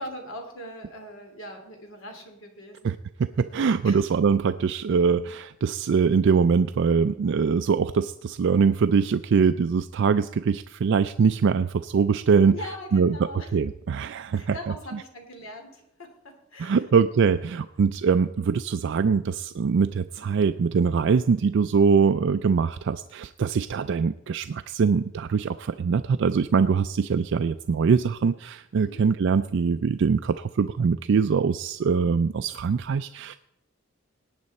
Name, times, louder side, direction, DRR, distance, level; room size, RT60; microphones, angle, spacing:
voice 1, 0.0-2.9 3.5-4.0 12.5-13.5 14.3-16.8 28.8-29.1, left 1 dB, 75° left, 4 dB, 2.8 m, -41 dB
voice 2, 3.4-12.5 12.9-13.2 13.5-14.5 16.6-33.4, right 5 dB, 65° right, 11 dB, 0.4 m, -23 dB
18.5 x 8.9 x 4.2 m, 0.81 s
head